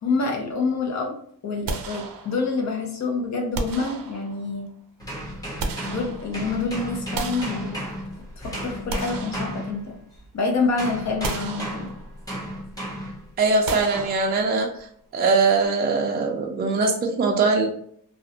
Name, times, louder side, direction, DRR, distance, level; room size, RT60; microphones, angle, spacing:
voice 1, 0.0-1.1 1.4-4.7 5.8-7.8 8.4-9.9 10.3-11.9, left 3 dB, 55° left, 1 dB, 0.6 m, -27 dB
sound 1, 1.7-2.7 3.5-4.6 5.3-6.6 7.1-8.3 8.7-10.2 10.5-10.7 11.2-12.3 13.7-14.8, right 4 dB, 80° right, 0.5 m, -34 dB
sound 2, 5.0-10.3 10.8-13.3 13.9-14.2, equal, 10° left, 1.0 m, -34 dB
voice 2, 13.4-14.7 15.1-17.7, right 3 dB, 30° right, 1 dB, 0.4 m, -21 dB
2.5 x 2.1 x 2.7 m, 0.65 s
cardioid pair, 115°, 34 cm